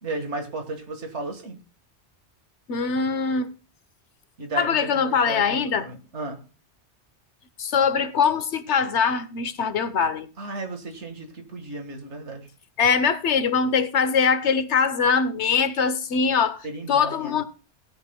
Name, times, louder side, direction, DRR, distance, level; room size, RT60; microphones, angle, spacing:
voice 1, 0.0-1.6 4.4-6.4 10.4-12.5 16.6-17.4, right 2 dB, 90° right, 2.0 m, -34 dB
voice 2, 2.7-3.5 4.6-5.9 7.6-10.3 12.8-17.5, left 6 dB, 80° left, 1.3 m, -22 dB
17.0 x 10.0 x 2.2 m
omnidirectional pair, 1.2 m